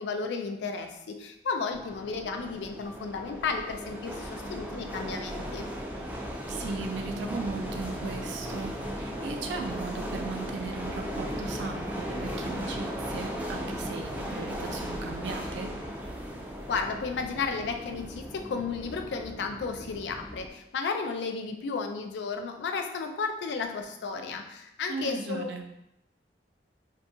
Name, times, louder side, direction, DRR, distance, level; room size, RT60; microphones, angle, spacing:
voice 1, 0.0-5.7 16.7-25.6, left 4 dB, 75° left, 6 dB, 0.3 m, -33 dB
sound 1, 1.7-20.5, equal, 10° right, 0.3 m, -37 dB
voice 2, 6.5-15.7 24.9-25.6, right 4 dB, 90° right, 4 dB, 0.4 m, -37 dB
2.7 x 2.2 x 2.7 m, 0.84 s
head